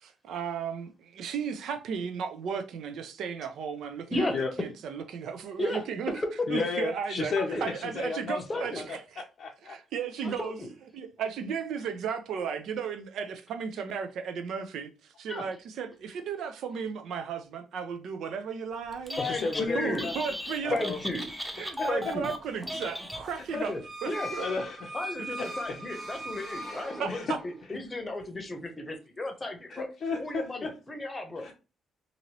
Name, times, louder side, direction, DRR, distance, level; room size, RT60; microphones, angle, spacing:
voice 1, 0.0-4.3 4.6-6.1 6.5-7.3 7.6-9.2 9.6-10.6 10.9-19.4 19.7-20.8 21.6-23.7 24.0-24.5 25.2-25.3 27.0-27.1, right 6 dB, 75° right, 0.5 m, -35 dB
voice 2, 6.5-9.0 9.4-9.8 10.2-10.3 19.2-20.3 20.6-21.0 23.5-23.7 24.1-24.9 25.7-25.8 27.1-27.3 28.4-28.5 29.7-30.7 31.4-31.5, left 4 dB, 60° left, 0.5 m, -33 dB
voice 3, 7.4-7.7 8.5-8.8 10.4-10.7 15.3-15.4 19.2-20.1 20.7-21.3 21.9-22.3 23.7-24.3 24.9-29.9 30.2-31.5, left 2 dB, 20° left, 0.8 m, -34 dB
Telephone, 18.9-19.7 19.9-23.6, equal, 5° right, 0.5 m, -37 dB
sound 1, 23.5-27.6, right 1 dB, 25° right, 1.0 m, -40 dB
2.9 x 2.6 x 2.8 m
cardioid pair, 90°, 0 cm